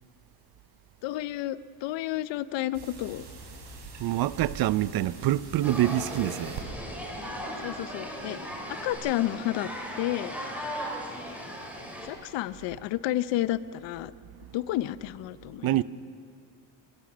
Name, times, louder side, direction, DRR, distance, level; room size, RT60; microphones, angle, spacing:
voice 1, 1.0-3.3 7.6-8.4 8.7-9.7 10.0-10.3 12.0-14.1 14.5-15.8, left 14 dB, 85° left, 0.8 m, -31 dB
sound 1, 2.7-6.6 8.9-9.0, right 4 dB, 80° right, 4.6 m, -43 dB
voice 2, 4.0-6.6 14.3-14.4 15.6-15.8, right 14 dB, 55° right, 0.6 m, -26 dB
sound 2, 5.6-12.1, equal, 5° right, 3.2 m, -37 dB
24.0 x 18.0 x 6.2 m
cardioid pair, 150°, 43 cm